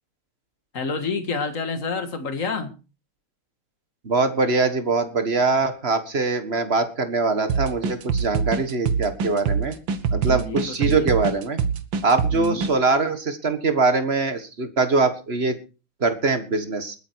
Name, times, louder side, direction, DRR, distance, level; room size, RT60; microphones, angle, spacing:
voice 1, 0.7-2.7 6.5-6.6 10.1-11.1 12.3-12.7, left 4 dB, 40° left, 8 dB, 2.1 m, -29 dB
voice 2, 4.0-9.7 10.1-11.6 12.0-15.6 16.0-16.9, right 3 dB, 30° right, 9 dB, 1.6 m, -22 dB
sound 1, 7.5-12.7, right 6 dB, 65° right, 1.9 m, -24 dB
20.5 x 9.2 x 4.6 m, 0.33 s
omnidirectional pair, 2.4 m